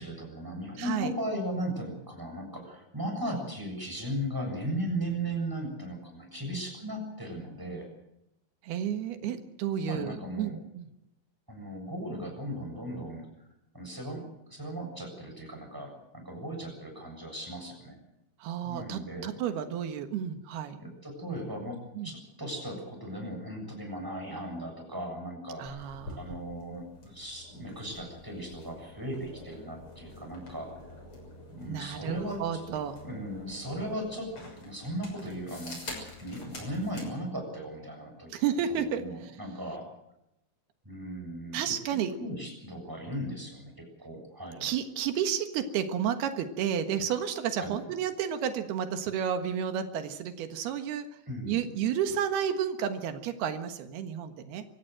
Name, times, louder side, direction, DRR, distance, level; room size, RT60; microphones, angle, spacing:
voice 1, 0.0-7.9 9.2-9.3 9.8-10.5 11.5-13.2 13.7-14.2 14.5-18.0 18.6-19.3 20.8-21.8 22.0-30.8 31.5-32.6 33.0-38.3 38.7-39.9 40.8-41.7 42.2-43.7 44.0-44.7 47.6-47.8 51.3-51.7, equal, 5° right, 2 dB, 7.2 m, -37 dB
voice 2, 0.8-1.1 8.6-10.9 18.4-20.8 22.0-22.1 25.6-26.3 31.7-33.0 38.3-39.3 41.5-42.1 44.6-51.2 51.5-54.7, right 8 dB, 85° right, 7 dB, 3.5 m, -31 dB
sound 1, 25.7-37.1, left 2 dB, 35° left, 7.2 m, -47 dB
25.5 x 16.5 x 7.8 m, 0.85 s
omnidirectional pair, 4.4 m